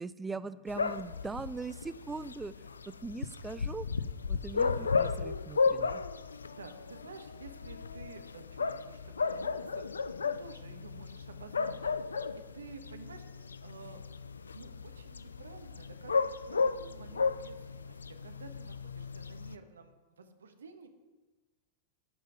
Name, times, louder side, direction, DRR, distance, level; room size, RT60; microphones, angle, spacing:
voice 1, 0.0-3.9 4.3-6.0, right 4 dB, 15° right, 14 dB, 0.5 m, -41 dB
sound 1, 0.7-19.5, left 5 dB, 85° left, 0.5 m, -34 dB
voice 2, 4.6-5.0 6.5-14.0 14.5-20.9, right 4 dB, 80° right, 7 dB, 1.2 m, -52 dB
13.0 x 5.7 x 9.1 m, 1.2 s
figure-of-eight pair, 95°, 0 cm